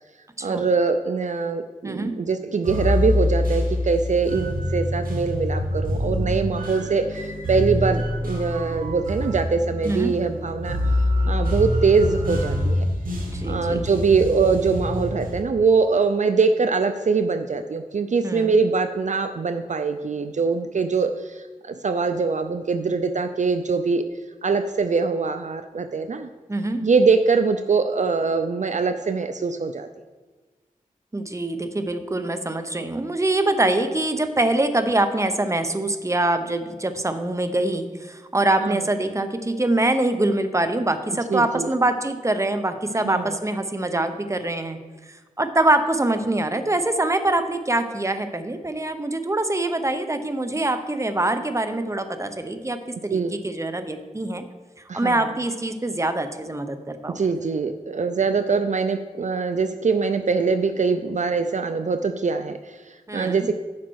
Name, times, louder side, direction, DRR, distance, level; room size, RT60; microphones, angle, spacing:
voice 1, 0.4-11.0 11.3-12.8 13.4-24.0 24.4-26.3 26.8-29.9 38.6-38.8 41.3-41.7 43.0-43.4 53.1-53.3 54.9-55.3 57.1-63.5, right 4 dB, 55° right, 8 dB, 0.5 m, -23 dB
voice 2, 1.8-2.1 9.8-10.1 13.3-13.8 18.2-18.6 26.5-26.8 31.1-44.8 45.1-54.4 54.9-57.2 63.1-63.5, right 2 dB, 20° right, 9 dB, 0.8 m, -24 dB
sound 1, 2.7-15.4, left 1 dB, 80° right, 1.8 m, -25 dB
10.5 x 5.8 x 4.7 m, 1.3 s
cardioid pair, 55°, 14 cm